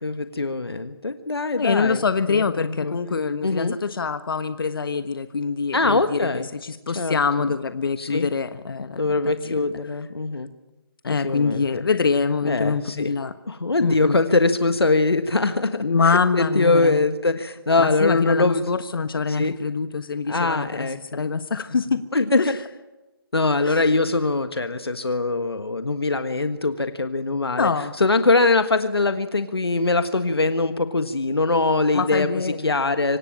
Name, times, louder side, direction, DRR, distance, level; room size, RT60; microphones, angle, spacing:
voice 1, 0.0-3.0 3.4-3.8 5.7-6.5 6.9-7.5 8.0-8.3 9.0-10.5 11.2-11.8 12.4-13.1 13.5-18.6 19.3-19.5 20.3-21.2 22.1-22.6 23.3-27.7 28.0-33.2, left 3 dB, 85° left, 9 dB, 1.5 m, -22 dB
voice 2, 1.5-6.3 6.6-9.0 9.4-9.7 11.0-13.3 13.8-14.2 15.8-17.0 17.8-20.9 21.1-22.0 22.4-22.5 23.6-23.9 27.5-27.9 31.9-32.7, left 5 dB, 65° left, 10 dB, 1.2 m, -24 dB
25.5 x 17.5 x 9.0 m, 1.1 s
figure-of-eight pair, 155°, 13 cm